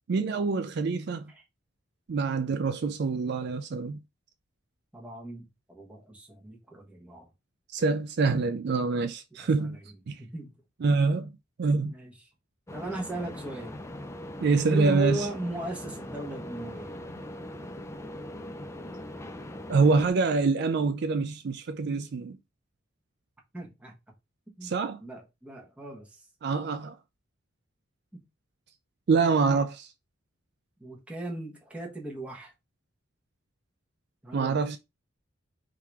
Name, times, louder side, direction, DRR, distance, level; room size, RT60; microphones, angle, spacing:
voice 1, 0.1-1.3 2.1-4.0 7.7-9.8 10.1-10.2 10.8-11.3 11.6-11.9 14.4-15.3 19.7-22.4 24.6-25.0 26.4-27.0 29.1-29.9 34.3-34.8, right 4 dB, 55° right, 0.4 m, -25 dB
voice 2, 4.9-7.3 9.4-9.8 10.2-10.5 11.8-12.3 12.7-13.8 14.6-17.0 23.5-24.0 24.6-24.7 25.0-26.2 28.1-28.2 30.8-32.5 34.2-34.8, right 1 dB, 5° right, 1.2 m, -38 dB
sound 1, 12.7-20.1, left 1 dB, 15° left, 0.4 m, -41 dB
3.7 x 2.8 x 4.7 m
head